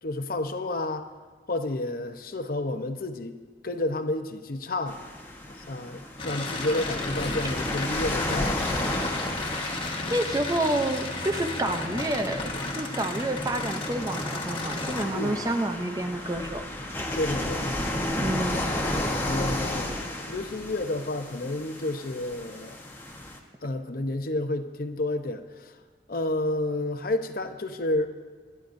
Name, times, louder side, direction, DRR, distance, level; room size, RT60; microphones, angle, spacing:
voice 1, 0.0-1.1 1.5-3.4 3.6-5.0 5.5-8.7 15.1-15.4 17.1-17.7 19.2-19.9 20.3-22.8 23.6-25.7 26.1-28.1, left 2 dB, 55° left, 7 dB, 0.8 m, -30 dB
sound 1, 4.9-23.4, left 1 dB, 15° left, 1.1 m, -33 dB
sound 2, 6.2-15.0, left 2 dB, 30° left, 1.3 m, -33 dB
voice 2, 10.1-12.5 12.8-16.6 18.1-18.6, right 1 dB, 20° right, 6 dB, 0.6 m, -29 dB
21.5 x 11.0 x 2.6 m, 1.4 s
head